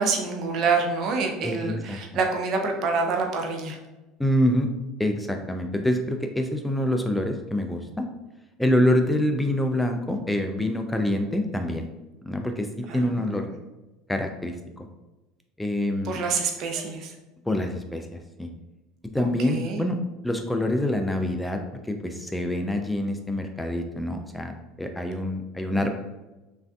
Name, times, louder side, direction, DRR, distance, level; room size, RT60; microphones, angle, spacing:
voice 1, 0.0-3.8 12.9-13.5 16.0-17.1 19.2-19.8, right 4 dB, 55° right, 3 dB, 0.5 m, -27 dB
voice 2, 1.4-2.0 4.2-4.7 5.0-8.0 8.6-11.9 12.3-13.5 14.1-14.9 15.6-16.2 17.5-18.5 19.1-20.0 20.2-25.9, left 1 dB, 5° left, 5 dB, 0.3 m, -26 dB
3.3 x 2.5 x 2.3 m, 1.1 s
hypercardioid pair, 90°, 0 cm